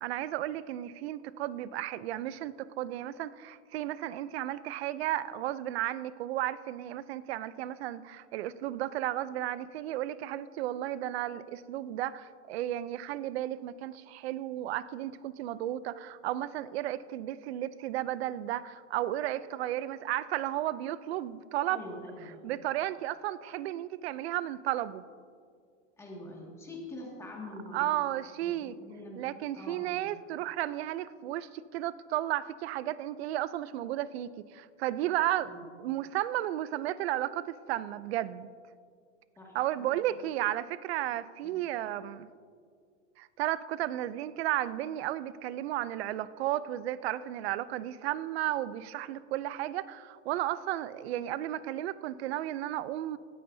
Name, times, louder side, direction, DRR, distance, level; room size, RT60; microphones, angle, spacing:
voice 1, 0.0-21.8 22.4-25.0 27.7-28.7 29.2-38.5 39.5-42.3 43.2-53.2, right 13 dB, 50° right, 16 dB, 0.5 m, -33 dB
voice 2, 21.7-22.4 26.0-27.9 28.4-29.2 29.5-30.1 35.4-35.6 39.4-39.9 41.4-41.6, left 1 dB, 5° left, -2 dB, 2.0 m, -45 dB
18.0 x 14.5 x 2.7 m, 2.1 s
supercardioid pair, 165°, 40 cm